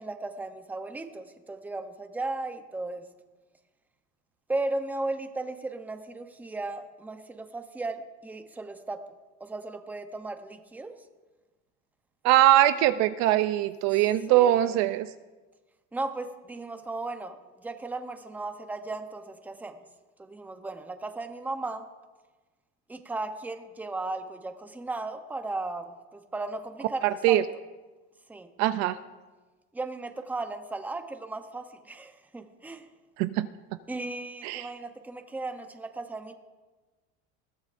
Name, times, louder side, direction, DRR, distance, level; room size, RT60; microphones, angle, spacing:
voice 1, 0.0-3.1 4.5-9.0 9.4-10.9 14.3-14.8 15.9-19.8 20.2-21.9 22.9-27.4 28.3-28.5 29.7-32.9 33.9-36.3, right 2 dB, 5° right, 7 dB, 0.7 m, -36 dB
voice 2, 12.2-15.1 27.0-27.4 28.6-29.0 33.2-33.5 34.4-34.7, right 13 dB, 50° right, 12 dB, 0.5 m, -22 dB
20.5 x 15.0 x 2.5 m, 1.2 s
cardioid pair, 150°, 35 cm